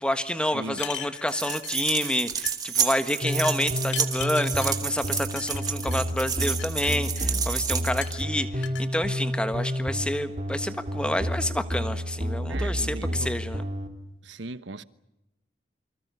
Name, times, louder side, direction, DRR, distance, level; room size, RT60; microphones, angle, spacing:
voice 1, 0.0-13.6, left 1 dB, 5° left, 1.4 m, -28 dB
voice 2, 0.5-0.8 12.5-13.3 14.2-14.8, right 2 dB, 75° right, 1.1 m, -38 dB
sound 1, 0.7-2.2 2.4-2.8 3.3-4.8 5.4-6.0 6.4-7.5 8.0-8.9, left 11 dB, 80° left, 1.6 m, -39 dB
sound 2, 1.3-8.2, right 7 dB, 20° right, 1.8 m, -30 dB
sound 3, 3.2-13.9, equal, 35° right, 2.9 m, -30 dB
28.5 x 25.5 x 6.9 m
head